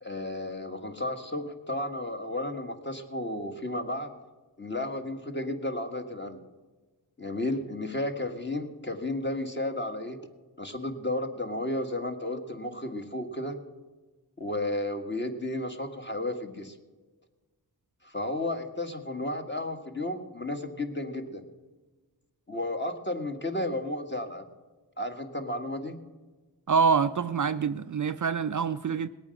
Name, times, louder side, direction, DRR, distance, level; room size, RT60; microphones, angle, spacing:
voice 1, 0.0-4.1 4.6-6.4 7.2-10.2 10.6-13.6 14.4-16.8 18.0-21.4 22.5-24.5 25.0-26.0, left 1 dB, 25° left, 1.7 m, -33 dB
voice 2, 26.7-29.1, right 6 dB, 45° right, 0.5 m, -26 dB
20.0 x 8.8 x 6.5 m
wide cardioid pair, 60°, 42 cm